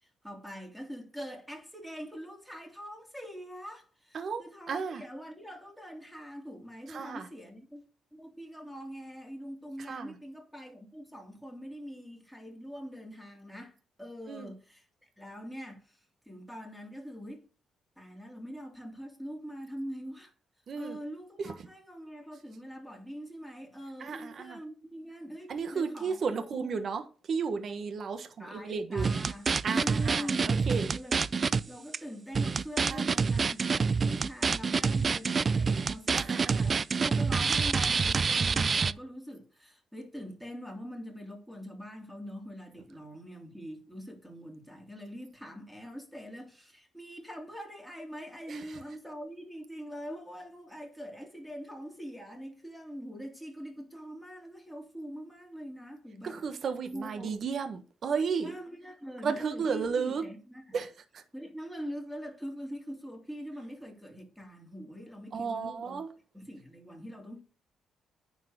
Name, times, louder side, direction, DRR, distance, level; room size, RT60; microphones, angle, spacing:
voice 1, 0.0-7.8 8.1-16.0 16.2-17.4 18.0-20.3 20.7-26.1 26.5-26.7 28.4-31.2 31.6-56.4 56.9-57.3 58.4-60.6 61.3-66.0 66.3-67.4, equal, ahead, 3.4 m, -43 dB
voice 2, 4.1-5.0 6.9-7.3 9.8-10.2 14.3-14.5 20.7-21.0 21.4-21.5 24.0-24.6 25.5-29.1 29.6-30.9 32.9-33.5 36.1-36.7 48.5-48.8 56.2-58.5 59.2-60.2 60.7-61.2 65.3-66.1, right 5 dB, 55° right, 1.2 m, -34 dB
sound 1, 29.0-31.6 31.9-32.0 32.3-38.9, right 5 dB, 40° right, 0.4 m, -27 dB
9.7 x 4.7 x 6.5 m
cardioid pair, 90°, 0 cm